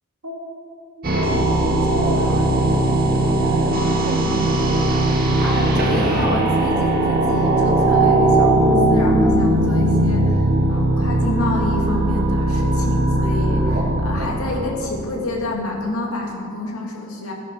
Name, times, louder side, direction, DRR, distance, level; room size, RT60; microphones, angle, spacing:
sound 1, 1.0-15.1, right 1 dB, 45° right, 1.6 m, -18 dB
voice 1, 1.0-4.6, right 1 dB, 80° right, 1 dB, 2.0 m, -29 dB
voice 2, 5.4-17.3, left 2 dB, 85° left, -1 dB, 2.2 m, -28 dB
15.0 x 10.5 x 4.7 m, 2.5 s
head